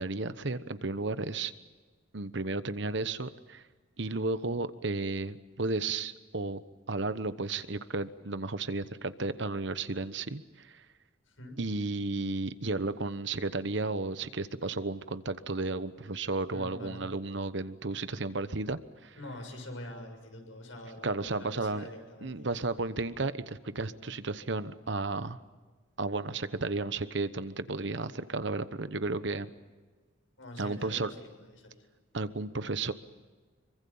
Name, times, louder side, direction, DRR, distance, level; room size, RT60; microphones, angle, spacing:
voice 1, 0.0-1.5 2.1-3.6 4.0-6.6 6.9-10.8 11.6-19.2 21.0-21.9 22.2-25.4 26.0-29.5 30.6-31.1 32.1-32.9, right 3 dB, 60° right, 13 dB, 1.1 m, -33 dB
voice 2, 11.3-11.6 16.5-17.1 19.2-22.5 30.4-31.8, left 1 dB, 75° left, 3 dB, 6.7 m, -45 dB
26.5 x 24.0 x 7.2 m, 1.3 s
head